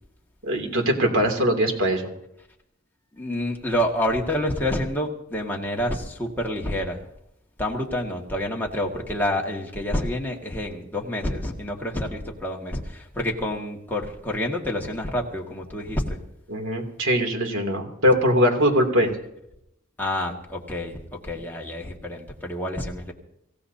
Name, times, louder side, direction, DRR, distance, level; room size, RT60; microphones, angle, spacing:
voice 1, 0.4-2.1 16.5-19.1 21.3-21.4, equal, 80° right, 3 dB, 2.9 m, -21 dB
voice 2, 3.2-7.0 7.6-16.2 20.0-21.0 21.2-23.1, left 1 dB, 10° left, -2 dB, 1.9 m, -28 dB
25.0 x 16.0 x 2.8 m, 0.81 s
head